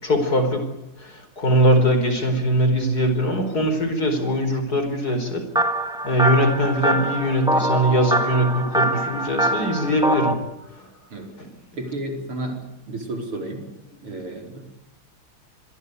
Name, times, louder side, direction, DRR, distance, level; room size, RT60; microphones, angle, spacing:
voice 1, 0.0-5.5 6.0-10.4 10.8-10.9 11.4-11.5, equal, 45° left, 5.2 m, -21 dB
sound 1, 5.6-10.3, right 1 dB, ahead, 2.1 m, -23 dB
voice 2, 11.7-13.6 14.0-14.6, right 1 dB, 80° right, 5.6 m, -32 dB
26.5 x 22.5 x 8.3 m
omnidirectional pair, 2.4 m